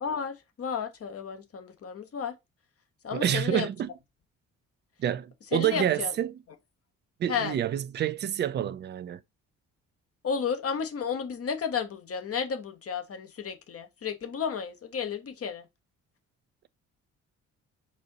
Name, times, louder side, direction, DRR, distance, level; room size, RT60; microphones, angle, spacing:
voice 1, 0.0-2.3 3.0-3.7 5.5-6.1 7.3-7.5 10.2-15.6, left 6 dB, 35° left, 0.9 m, -32 dB
voice 2, 3.1-3.9 5.0-6.4 7.2-9.2, right 10 dB, 30° right, 0.4 m, -28 dB
4.2 x 2.5 x 3.9 m
figure-of-eight pair, 40°, 40 cm